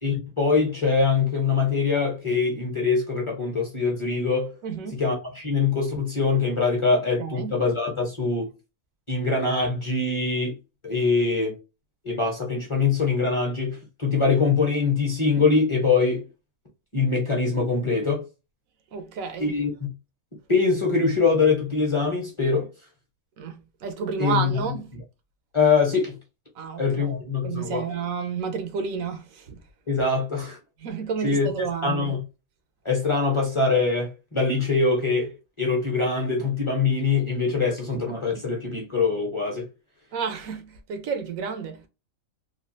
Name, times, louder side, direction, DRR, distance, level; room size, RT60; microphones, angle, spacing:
voice 1, 0.0-4.5 4.9-8.5 9.1-10.5 10.8-11.5 12.0-16.2 16.9-18.2 19.4-19.9 20.5-22.7 24.2-24.6 25.5-26.2 26.8-27.8 29.9-30.6 31.2-31.5 31.8-32.2 32.8-39.7, left 4 dB, 25° left, 0.8 m, -23 dB
voice 2, 4.6-5.0 7.2-7.5 18.9-19.5 23.4-24.9 26.5-27.1 27.4-29.6 30.8-32.1 40.1-41.8, right 6 dB, 75° right, 1.0 m, -31 dB
3.2 x 2.3 x 2.6 m
omnidirectional pair, 1.5 m